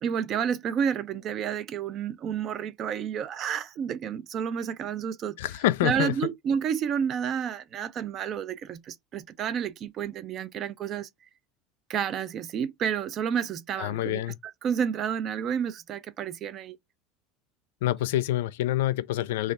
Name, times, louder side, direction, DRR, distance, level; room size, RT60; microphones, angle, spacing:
voice 1, 0.0-5.4 5.8-11.1 11.9-16.8, right 8 dB, 30° right, 0.3 m, -30 dB
voice 2, 5.4-6.1 13.8-14.3 17.8-19.5, left 14 dB, 90° left, 0.3 m, -26 dB
3.1 x 2.3 x 4.0 m
supercardioid pair, 165°, 0 cm